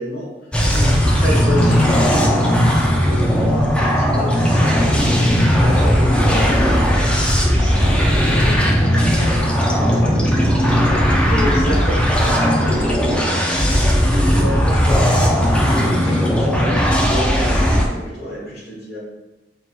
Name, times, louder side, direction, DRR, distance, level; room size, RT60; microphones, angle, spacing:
voice 1, 0.0-6.3 6.6-7.2 11.3-12.9 13.1-13.9 14.3-19.0, left 1 dB, 60° left, -5 dB, 1.4 m, -29 dB
sound 1, 0.5-17.9, equal, 5° left, 0.4 m, -16 dB
voice 2, 7.5-9.5 9.8-11.3 16.0-16.2, left 1 dB, 40° left, -9 dB, 0.9 m, -31 dB
5.3 x 2.9 x 2.2 m, 1.1 s
head